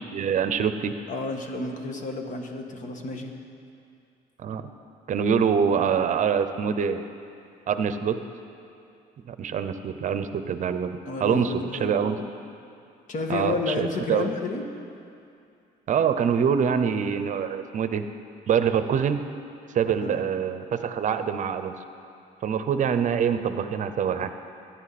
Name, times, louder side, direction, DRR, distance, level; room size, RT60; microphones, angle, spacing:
voice 1, 0.0-0.9 4.4-4.7 5.1-7.0 7.7-8.2 9.3-12.2 13.3-14.3 15.9-18.0 18.5-19.3 19.7-21.8 22.4-24.3, right 7 dB, 50° right, 10 dB, 0.7 m, -25 dB
voice 2, 1.1-3.3 11.1-12.2 13.1-14.7 20.0-20.2, left 3 dB, 50° left, 3 dB, 1.6 m, -31 dB
22.0 x 10.5 x 4.2 m, 2.5 s
cardioid pair, 110°, 17 cm